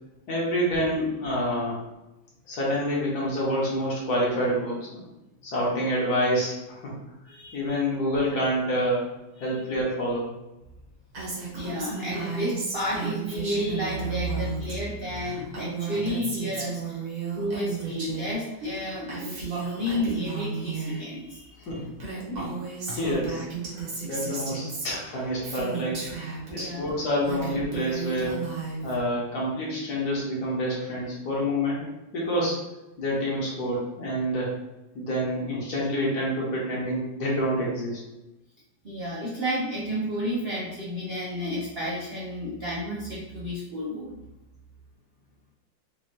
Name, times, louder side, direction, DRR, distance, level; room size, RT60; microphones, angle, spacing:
voice 1, 0.3-1.8 2.5-5.0 5.4-6.9 7.5-9.1 9.4-10.3 21.6-21.9 22.3-22.5 22.9-23.4 23.7-26.0 26.5-28.4 28.8-31.9 32.1-32.6 33.0-34.5 34.9-38.0, equal, 55° left, -5 dB, 1.6 m, -27 dB
voice 2, 7.3-7.8 9.4-9.5 11.5-17.0 17.3-21.8 22.9-23.0 26.5-27.0 38.8-44.2, equal, 75° right, -5 dB, 0.5 m, -31 dB
Female speech woman speaking, 11.1-14.7 15.0-18.3 18.6-21.0 21.6-21.7 21.9-26.6 27.1-29.0, right 5 dB, 55° right, 1.6 m, -34 dB
5.1 x 2.8 x 2.8 m, 0.98 s
omnidirectional pair, 2.1 m